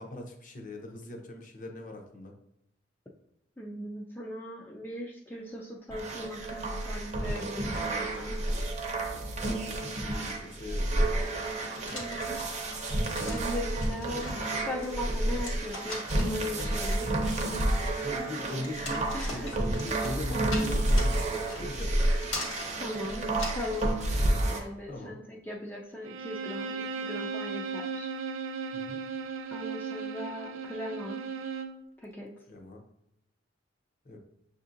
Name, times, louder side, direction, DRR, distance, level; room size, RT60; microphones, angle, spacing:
voice 1, 0.0-2.3 9.1-10.9 17.6-22.3 24.9-25.2 28.7-29.0 32.5-32.8 34.0-34.2, left 2 dB, 45° left, 3 dB, 0.7 m, -41 dB
voice 2, 3.6-8.4 11.9-17.1 19.1-19.5 22.8-23.3 23.5-28.1 29.5-31.2 32.0-32.3, left 1 dB, 10° left, -2 dB, 0.3 m, -39 dB
sound 1, 5.9-24.6, right 1 dB, 35° right, 0.6 m, -30 dB
sound 2, 11.9-23.9, left 2 dB, 85° left, 1.3 m, -42 dB
Bowed string instrument, 26.0-31.8, right 5 dB, 80° right, 0.4 m, -36 dB
6.3 x 2.6 x 2.5 m, 0.83 s
head